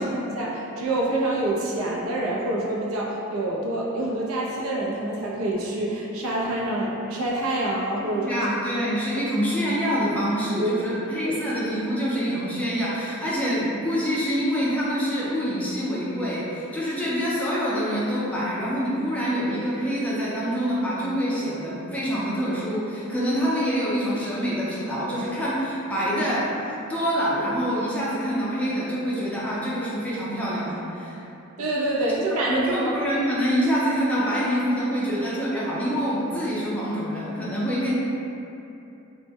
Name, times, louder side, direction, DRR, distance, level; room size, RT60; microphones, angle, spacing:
voice 1, 0.0-8.4 8.7-8.9 9.1-9.2 10.6-10.7 11.2-11.3 31.6-33.0, right 1 dB, 80° right, -4 dB, 0.4 m, -26 dB
voice 2, 8.2-31.2 32.5-37.9, equal, 5° left, -8 dB, 0.4 m, -26 dB
2.1 x 2.0 x 3.4 m, 2.9 s
head